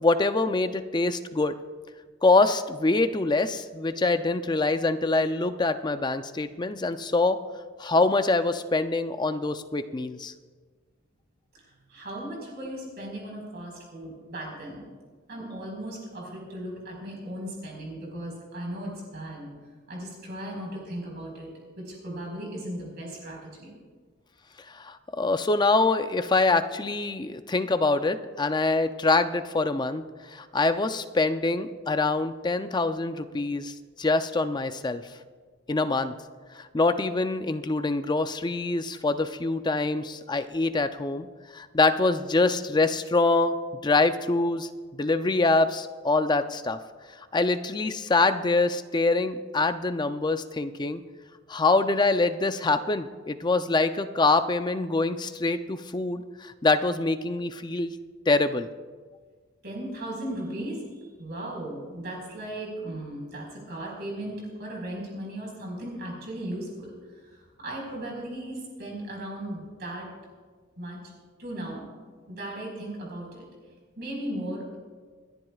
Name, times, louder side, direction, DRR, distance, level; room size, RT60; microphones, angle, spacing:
voice 1, 0.0-1.5 2.2-7.4 7.8-10.3 24.7-35.0 35.7-36.1 36.5-41.3 41.5-43.5 43.8-46.8 47.3-51.0 51.5-57.9 58.3-58.7, left 3 dB, 20° left, 10 dB, 0.5 m, -25 dB
voice 2, 11.6-14.8 15.3-19.5 19.9-21.5 21.8-23.7 59.6-60.8 61.2-70.1 70.8-71.0 71.4-71.9 72.3-73.5 74.0-74.7, right 1 dB, 50° right, -1 dB, 4.7 m, -37 dB
28.0 x 11.0 x 2.4 m, 1.5 s
head